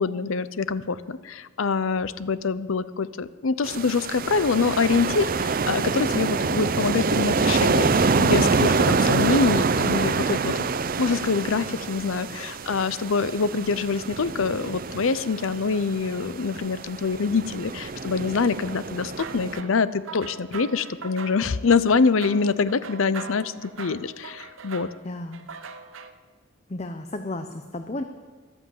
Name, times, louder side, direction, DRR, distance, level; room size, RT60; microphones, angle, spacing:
voice 1, 0.0-10.7 11.0-24.9, left 4 dB, 70° left, 15 dB, 0.6 m, -25 dB
sound 1, 3.6-19.6, right 4 dB, 40° right, 0.5 m, -26 dB
sound 2, 18.7-26.1, right 5 dB, 70° right, 0.9 m, -41 dB
voice 2, 25.0-25.5 26.7-28.0, left 2 dB, 30° left, 8 dB, 0.6 m, -33 dB
14.5 x 12.0 x 7.6 m, 1.4 s
head